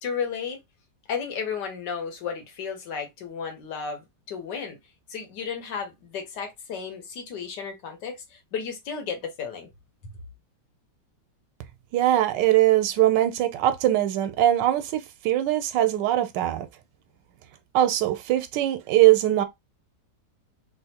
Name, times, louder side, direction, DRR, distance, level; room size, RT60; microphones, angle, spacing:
voice 1, 0.0-0.6 1.1-4.8 5.1-9.7 10.0-10.2, left 6 dB, 80° left, 1.6 m, -33 dB
voice 2, 11.9-16.7 17.7-19.4, right 13 dB, 90° right, 1.2 m, -21 dB
3.4 x 2.5 x 2.8 m
omnidirectional pair, 1.9 m